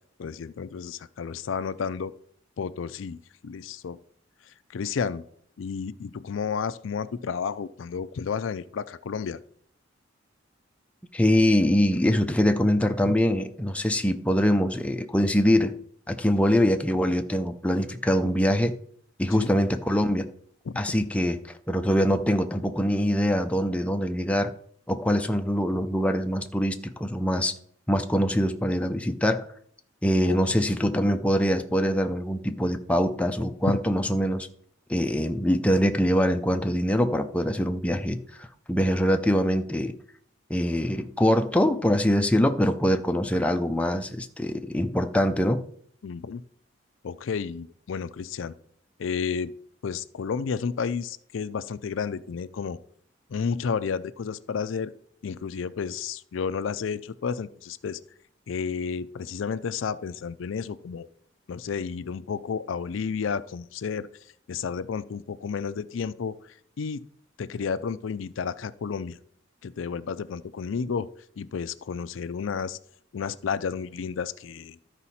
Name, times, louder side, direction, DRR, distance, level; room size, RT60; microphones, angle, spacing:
voice 1, 0.2-2.1 2.6-4.0 4.7-5.2 5.6-9.4 13.1-13.2 19.3-19.5 20.7-20.8 30.3-30.7 33.7-33.8 46.0-46.4 47.0-48.5 49.0-49.5 49.8-52.8 53.3-54.9 55.2-58.0 58.5-61.1 61.5-64.1 64.5-66.4 66.8-67.0 67.4-69.2 69.6-71.1 71.4-72.8 73.1-74.8, left 6 dB, 80° left, 14 dB, 0.4 m, -31 dB
voice 2, 11.1-15.7 16.1-18.8 19.2-20.3 20.8-21.4 21.7-24.5 24.9-27.5 27.9-29.5 30.0-34.5 34.9-38.2 38.7-39.9 40.5-45.6, equal, 5° left, 6 dB, 0.5 m, -23 dB
12.5 x 4.9 x 4.2 m, 0.62 s
head